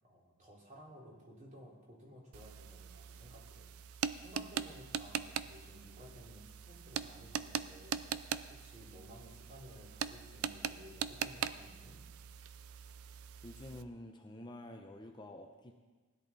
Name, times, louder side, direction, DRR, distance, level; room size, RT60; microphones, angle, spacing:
voice 1, 0.0-8.0 8.5-12.0, equal, 35° right, -4 dB, 3.2 m, -56 dB
sound 1, 2.3-13.8, right 8 dB, 85° right, 0.5 m, -42 dB
voice 2, 13.4-15.7, left 1 dB, 20° left, 3 dB, 0.7 m, -49 dB
16.5 x 10.5 x 4.2 m, 1.3 s
head